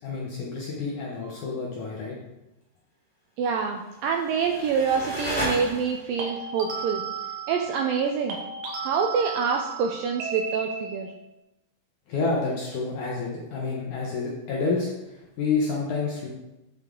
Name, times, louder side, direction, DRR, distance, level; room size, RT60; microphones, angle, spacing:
voice 1, 0.0-2.2 12.1-16.3, left 4 dB, 65° left, -3 dB, 2.1 m, -29 dB
sound 1, 1.2-1.5 6.2-8.0 8.3-11.2, right 5 dB, 60° right, 2.4 m, -35 dB
voice 2, 3.4-7.0 7.5-8.4 8.8-11.1, right 6 dB, 90° right, 3 dB, 1.9 m, -26 dB
sound 2, 3.9-6.2, equal, 5° left, 2.3 m, -33 dB
8.9 x 7.6 x 3.7 m, 0.95 s
omnidirectional pair, 4.7 m